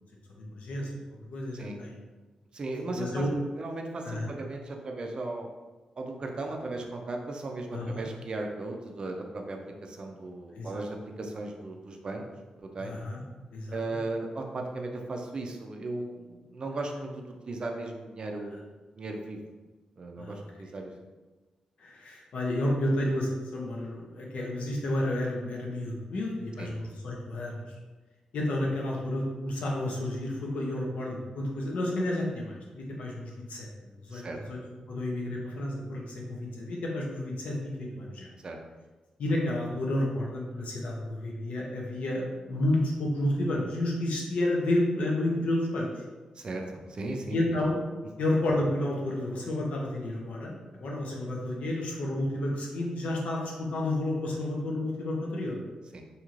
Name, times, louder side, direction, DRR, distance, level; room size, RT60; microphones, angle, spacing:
voice 1, 0.3-0.9 1.3-1.9 2.9-3.3 4.0-4.3 7.7-8.0 10.5-10.7 12.8-13.2 13.5-13.8 20.2-20.4 21.8-27.7 28.3-34.6 34.9-38.3 39.2-45.9 47.3-47.8 48.2-50.5 50.8-55.6, left 1 dB, 80° left, -2 dB, 0.6 m, -31 dB
voice 2, 2.5-3.3 3.6-5.5 6.0-12.3 12.6-13.0 13.7-18.7 19.0-19.4 20.0-20.9 26.6-26.7 34.1-34.4 38.4-38.6 46.4-47.4 55.9-56.0, right 2 dB, 40° right, 2 dB, 0.4 m, -36 dB
3.0 x 2.7 x 2.4 m, 1.3 s
wide cardioid pair, 120°, 2 cm